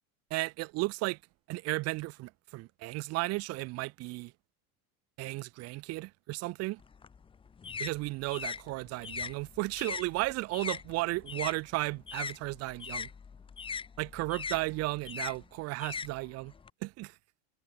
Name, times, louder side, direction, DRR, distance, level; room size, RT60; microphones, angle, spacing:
voice 1, 0.3-1.2 1.5-4.3 5.2-6.8 7.8-13.1 14.0-16.5 16.8-17.1, right 21 dB, 35° right, 0.6 m, -34 dB
sound 1, 6.8-11.6 11.9-16.7, left 6 dB, 10° left, 0.8 m, -40 dB
cardioid pair, 160°, 43 cm